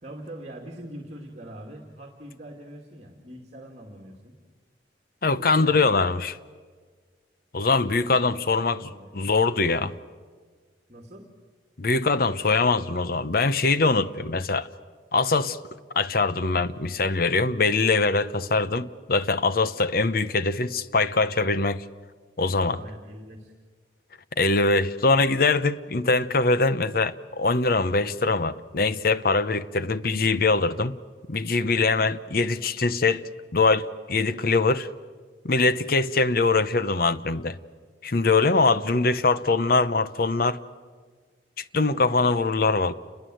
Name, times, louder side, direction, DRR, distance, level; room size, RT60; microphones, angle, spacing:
voice 1, 0.0-4.4 5.3-5.9 7.9-9.1 10.9-11.3 22.7-23.5, right 1 dB, 40° right, 2.5 m, -43 dB
voice 2, 5.2-6.4 7.5-9.9 11.8-14.7 15.1-15.6 15.9-21.8 22.4-22.8 24.4-31.0 31.3-33.2 33.5-34.9 35.4-37.6 38.0-40.6 41.6-42.9, left 3 dB, 55° left, 0.8 m, -23 dB
29.5 x 21.5 x 7.8 m
head